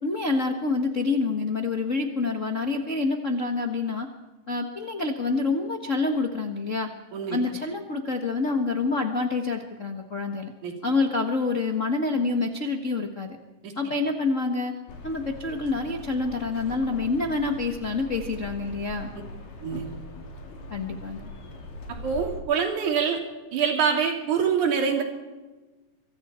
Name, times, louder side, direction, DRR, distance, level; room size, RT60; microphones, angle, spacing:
voice 1, 0.0-4.1 4.5-6.9 7.3-10.5 10.8-13.4 13.8-14.8 15.0-19.1 20.7-21.2, left 3 dB, 60° left, 2 dB, 0.8 m, -27 dB
sound 1, 14.9-22.4, left 1 dB, 80° left, 4.5 m, -41 dB
voice 2, 22.0-23.2 23.5-25.0, right 6 dB, 60° right, 2 dB, 4.2 m, -25 dB
25.0 x 24.0 x 4.4 m, 1.2 s
omnidirectional pair, 3.9 m